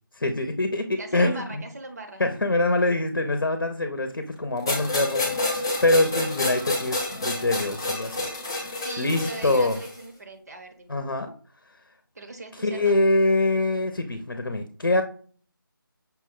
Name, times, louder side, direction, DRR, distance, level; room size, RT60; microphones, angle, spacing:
voice 1, 0.1-1.6 2.2-8.3 8.5-8.7 9.0-9.8 10.9-11.3 12.6-15.0, left 2 dB, 65° left, 7 dB, 0.7 m, -24 dB
voice 2, 1.0-2.2 8.8-10.9 12.1-13.0, right 2 dB, 45° right, 5 dB, 0.8 m, -40 dB
sound 1, 4.7-10.0, left 2 dB, 10° left, 0.5 m, -29 dB
5.8 x 2.2 x 3.6 m, 0.43 s
figure-of-eight pair, 165°, 12 cm